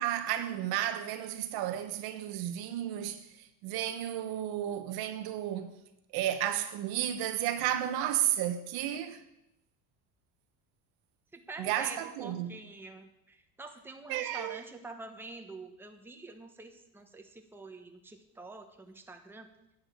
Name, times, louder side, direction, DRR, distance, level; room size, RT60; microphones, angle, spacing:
voice 1, 0.0-5.8 6.1-9.2 11.6-12.6 14.1-14.6, right 11 dB, 70° right, 1.3 m, -33 dB
voice 2, 11.3-19.5, right 3 dB, 5° right, 1.1 m, -47 dB
10.5 x 6.8 x 8.3 m
cardioid pair, 125°, 39 cm